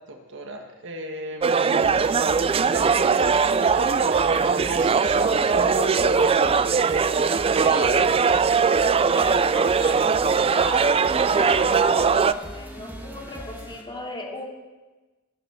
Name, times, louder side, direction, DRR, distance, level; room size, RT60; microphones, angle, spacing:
voice 1, 0.1-6.7 7.5-8.1, right 1 dB, 60° right, 3 dB, 1.6 m, -34 dB
sound 1, 1.4-12.3, right 5 dB, 25° right, 0.3 m, -20 dB
sound 2, 1.8-13.8, equal, 10° right, 1.7 m, -40 dB
voice 2, 7.6-8.0 8.8-14.4, left 2 dB, 20° left, -2 dB, 2.8 m, -36 dB
18.5 x 8.1 x 6.2 m, 1.2 s
head